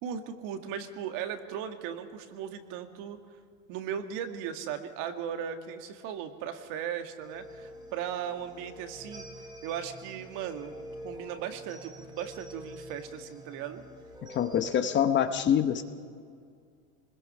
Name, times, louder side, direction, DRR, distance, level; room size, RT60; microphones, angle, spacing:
voice 1, 0.0-3.2 3.7-9.3 9.6-10.8 11.0-13.8, right 8 dB, 50° right, 7 dB, 1.9 m, -37 dB
sound 1, 7.2-14.7, equal, 10° right, 2.7 m, -47 dB
voice 2, 14.3-15.8, left 9 dB, 25° left, 9 dB, 0.9 m, -25 dB
25.5 x 21.0 x 5.6 m, 2.2 s
supercardioid pair, 130°, 41 cm